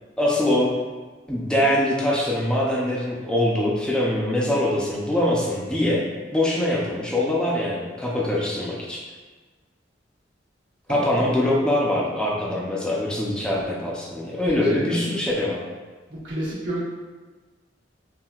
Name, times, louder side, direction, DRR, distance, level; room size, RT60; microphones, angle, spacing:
voice 1, 0.2-0.7 1.3-9.0 10.9-15.6, left 1 dB, 5° left, -4 dB, 0.5 m, -23 dB
voice 2, 10.9-11.3 14.5-15.0 16.1-16.8, right 1 dB, 80° right, -6 dB, 1.2 m, -30 dB
5.7 x 2.6 x 2.4 m, 1.3 s
head